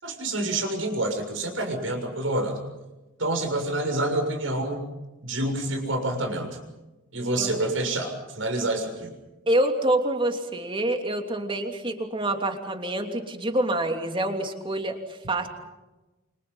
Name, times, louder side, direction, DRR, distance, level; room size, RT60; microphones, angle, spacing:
voice 1, 0.0-2.6 3.2-4.9 5.2-6.6 7.1-9.1, right 2 dB, 80° right, 4 dB, 6.9 m, -27 dB
voice 2, 9.5-15.0 15.3-15.5, right 1 dB, 25° right, 4 dB, 3.0 m, -26 dB
28.5 x 26.5 x 5.6 m, 1.1 s
head